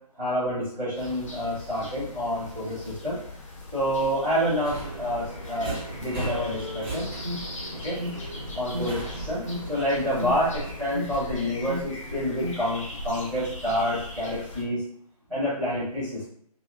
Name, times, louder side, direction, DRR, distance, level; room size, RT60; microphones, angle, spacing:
voice 1, 0.2-3.2 3.7-7.1 7.8-8.0 8.5-9.0 9.3-9.4 9.7-14.8 15.3-16.3, equal, 5° left, -12 dB, 1.1 m, -28 dB
sound 1, 0.9-14.6, left 2 dB, 50° left, 1.1 m, -40 dB
Subway metro underground, 4.6-11.2, right 1 dB, 15° right, 0.7 m, -37 dB
Alarm, 6.9-12.8, left 1 dB, 65° right, 0.7 m, -37 dB
3.0 x 2.7 x 2.4 m, 0.65 s
figure-of-eight pair, 155°, 21 cm